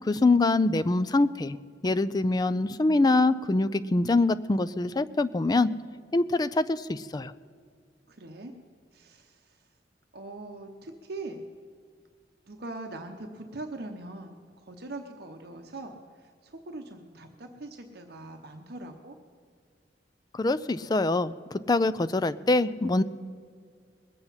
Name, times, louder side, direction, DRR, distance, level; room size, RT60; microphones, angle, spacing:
voice 1, 0.1-1.6 1.8-5.7 6.1-7.3 20.3-21.3 21.7-23.0, left 2 dB, 20° left, 14 dB, 0.3 m, -24 dB
voice 2, 8.1-8.5 8.9-9.7 10.1-11.5 12.5-19.2, right 2 dB, 60° right, 4 dB, 0.9 m, -42 dB
21.0 x 7.9 x 5.6 m, 2.1 s
head